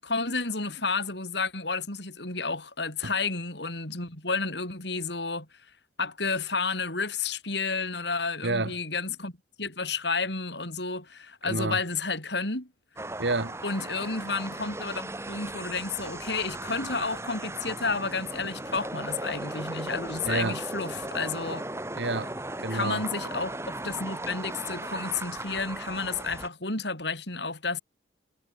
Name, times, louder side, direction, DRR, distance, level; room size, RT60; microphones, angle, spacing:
voice 1, 0.0-5.5 6.0-9.3 9.6-12.7 13.6-21.6 21.9-22.0 22.7-27.8, left 4 dB, 70° left, 6.5 m, -31 dB
voice 2, 8.4-8.7 11.5-11.8 13.2-13.6 20.2-20.6 21.9-23.0, right 2 dB, 75° right, 2.4 m, -29 dB
sound 1, 13.0-26.5, right 2 dB, 15° right, 2.6 m, -37 dB
head